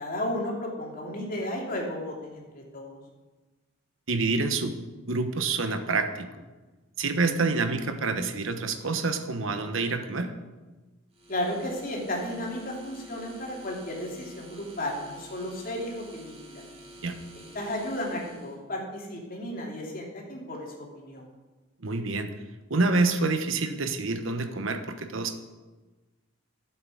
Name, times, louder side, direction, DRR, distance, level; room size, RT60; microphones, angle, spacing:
voice 1, 0.0-3.0 11.3-16.6 17.5-21.3, left 1 dB, 45° left, -2 dB, 3.1 m, -34 dB
voice 2, 4.1-4.8 5.1-6.3 7.0-10.3 17.0-17.1 21.8-22.3 22.7-25.3, right 3 dB, 75° right, 8 dB, 1.1 m, -27 dB
sound 1, 11.1-18.6, right 1 dB, 30° right, 2.6 m, -49 dB
12.5 x 7.9 x 7.1 m, 1.2 s
head